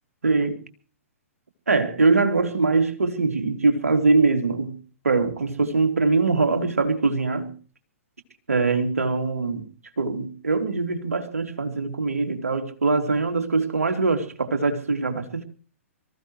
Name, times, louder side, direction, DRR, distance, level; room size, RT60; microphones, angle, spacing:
voice 1, 0.2-0.6 1.7-4.8 5.0-7.5 8.5-9.7 10.0-15.4, right 3 dB, 75° right, 2.8 m, -22 dB
25.5 x 15.0 x 3.1 m
figure-of-eight pair, 120°, 8 cm